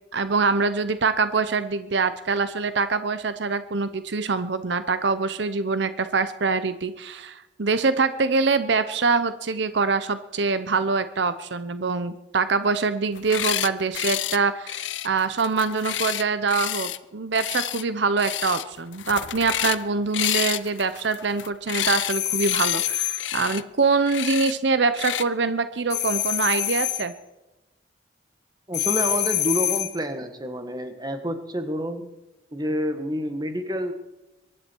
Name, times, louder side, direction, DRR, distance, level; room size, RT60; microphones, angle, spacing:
voice 1, 0.0-27.1, right 4 dB, 65° right, 12 dB, 0.8 m, -24 dB
sound 1, 13.1-13.7 13.9-14.4 14.7-17.0 17.3-17.8 18.2-18.6 18.9-19.8 20.1-22.1 22.4-22.9 23.2-23.6 24.1-24.5 24.9-25.2, left 12 dB, 80° left, 0.7 m, -29 dB
sound 2, 22.1-23.3 25.9-27.1 28.7-30.0, left 13 dB, 60° left, 1.4 m, -26 dB
voice 2, 28.7-32.1 32.5-33.9, equal, 20° right, 7 dB, 1.6 m, -28 dB
23.0 x 11.0 x 4.6 m, 1.0 s
head